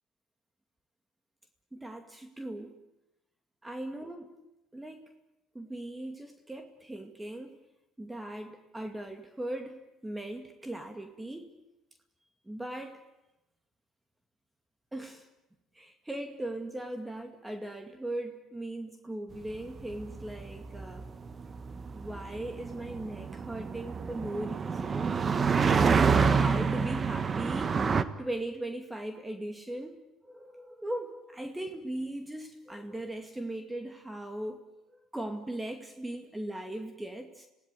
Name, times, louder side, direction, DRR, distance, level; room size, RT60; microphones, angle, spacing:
voice 1, 1.7-2.8 3.6-4.3 4.7-5.1 5.5-7.6 8.0-11.5 12.5-13.0 14.9-15.3 15.7-21.1 21.9-25.1 25.6-27.8 28.2-34.6 34.9-37.5, right 1 dB, 10° right, 6 dB, 2.3 m, -39 dB
sound 1, 19.5-28.0, right 5 dB, 35° right, 1.4 m, -28 dB
26.5 x 17.5 x 9.2 m, 0.94 s
supercardioid pair, 75°, 0 cm